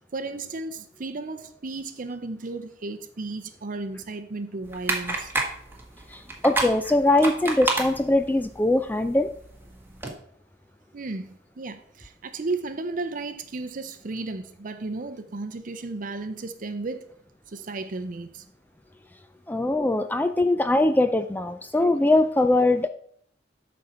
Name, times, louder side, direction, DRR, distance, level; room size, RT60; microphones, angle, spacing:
voice 1, 0.1-5.3 10.9-17.0 17.5-18.4, right 3 dB, 50° right, 0.6 m, -34 dB
sound 1, 4.6-10.1, right 2 dB, 15° right, 1.8 m, -31 dB
voice 2, 6.1-9.3 19.5-22.9, left 2 dB, 10° left, 0.3 m, -22 dB
12.5 x 4.3 x 5.5 m
head